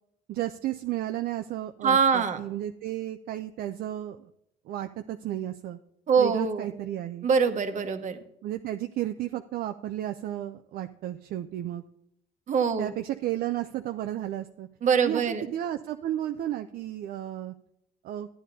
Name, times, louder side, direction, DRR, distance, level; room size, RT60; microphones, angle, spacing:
voice 1, 0.3-4.3 4.7-5.8 6.2-7.3 8.4-11.8 12.8-14.7 15.0-17.5 18.0-18.3, right 12 dB, 65° right, 7 dB, 0.5 m, -33 dB
voice 2, 1.8-2.4 6.1-6.7 7.2-8.2 12.5-12.9 14.8-15.4, right 6 dB, 45° right, 8 dB, 1.1 m, -24 dB
13.0 x 9.9 x 2.7 m, 0.77 s
cardioid pair, 110°, 17 cm